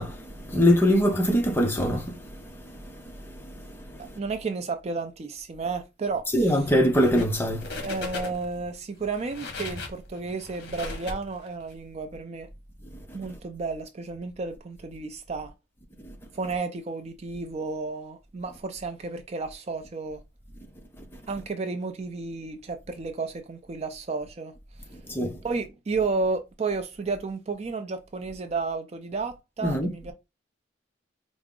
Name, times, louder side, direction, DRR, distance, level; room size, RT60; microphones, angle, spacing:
voice 1, 0.0-4.2 6.3-7.8 12.9-13.2 16.0-16.2 21.0-21.2 24.9-25.4 29.6-29.9, equal, 10° left, 0.6 m, -25 dB
voice 2, 4.2-6.3 7.8-12.5 13.1-15.5 16.3-20.2 21.3-24.5 25.4-30.1, right 4 dB, 35° right, 0.4 m, -32 dB
sound 1, 6.9-7.4 7.6-8.6 9.1-11.8, left 3 dB, 60° left, 1.0 m, -37 dB
4.5 x 2.0 x 3.6 m
head